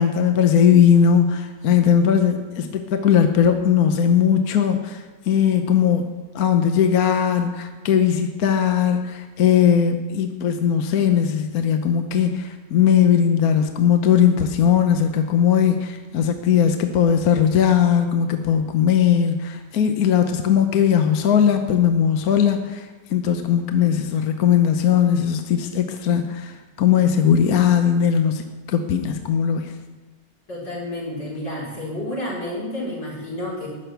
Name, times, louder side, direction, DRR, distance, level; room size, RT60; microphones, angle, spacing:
voice 1, 0.0-6.1 6.3-29.8, left 8 dB, 60° left, 6 dB, 1.2 m, -19 dB
voice 2, 30.5-33.7, left 1 dB, 90° left, -6 dB, 5.5 m, -30 dB
13.0 x 6.5 x 9.1 m, 1.3 s
omnidirectional pair, 1.9 m